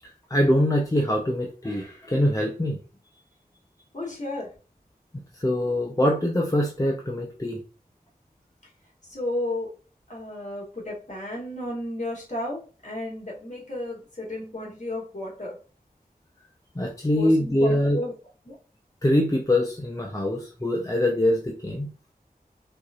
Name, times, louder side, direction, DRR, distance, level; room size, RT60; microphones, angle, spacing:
voice 1, 0.3-2.8 5.4-7.6 16.8-18.0 19.0-21.9, left 1 dB, 20° left, 0.7 m, -23 dB
voice 2, 3.9-4.5 9.1-9.7 10.1-15.6 17.1-18.1 18.5-18.6, left 1 dB, 50° left, 1.7 m, -33 dB
4.5 x 2.7 x 2.4 m
wide cardioid pair, 45°, 16 cm